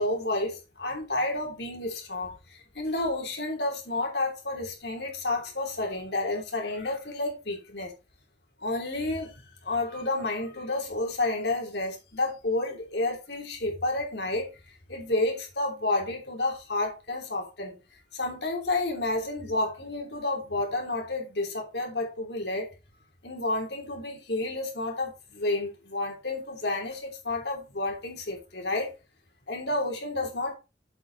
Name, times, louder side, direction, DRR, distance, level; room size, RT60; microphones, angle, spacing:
voice 1, 0.0-7.9 8.6-14.5 14.9-17.8 18.1-22.7 23.2-28.9 29.5-30.6, left 2 dB, 65° left, 3.1 m, -30 dB
7.9 x 7.8 x 3.9 m
head